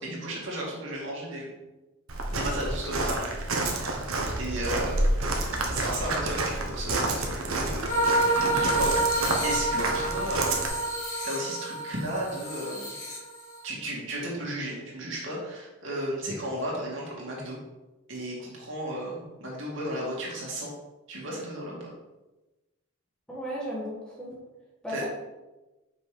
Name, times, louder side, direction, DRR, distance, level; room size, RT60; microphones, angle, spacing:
voice 1, 0.0-1.6 2.3-3.3 3.6-4.1 4.4-5.0 5.7-10.7 11.2-12.9 13.6-17.6 18.1-20.7 21.1-21.9 24.9-25.1, right 1 dB, 60° right, -4 dB, 2.4 m, -34 dB
Walk footsteps, 2.1-10.7, right 2 dB, 75° right, 1.3 m, -29 dB
sound 1, 7.9-13.6, right 1 dB, 35° left, 2.3 m, -28 dB
voice 2, 23.3-24.3 24.8-25.1, equal, 5° left, -5 dB, 1.7 m, -35 dB
6.1 x 5.5 x 5.2 m, 1.1 s
head